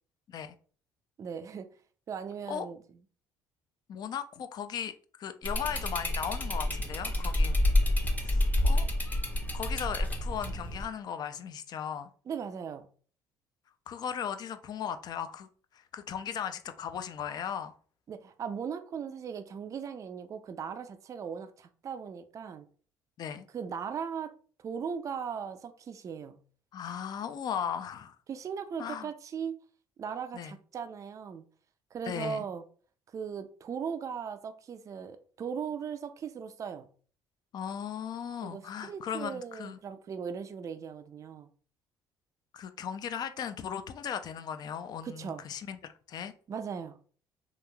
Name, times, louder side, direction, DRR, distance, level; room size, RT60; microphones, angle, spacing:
voice 1, 1.2-1.7 2.1-2.8 12.3-12.9 18.1-22.7 23.5-24.3 24.6-26.4 28.3-29.6 30.0-31.4 31.9-32.6 33.1-36.9 38.4-41.5 45.0-45.4 46.5-47.0, right 7 dB, 35° right, 0.3 m, -38 dB
voice 2, 3.9-4.9 5.2-7.6 8.2-8.9 9.5-12.1 13.9-17.8 23.2-23.5 26.7-28.2 28.8-29.1 30.3-30.6 32.1-32.5 37.5-39.8 42.5-46.3, left 8 dB, 50° left, 0.3 m, -37 dB
sound 1, 5.4-10.8, left 1 dB, 20° left, 0.7 m, -28 dB
3.0 x 2.4 x 2.2 m
supercardioid pair, 70°, 9 cm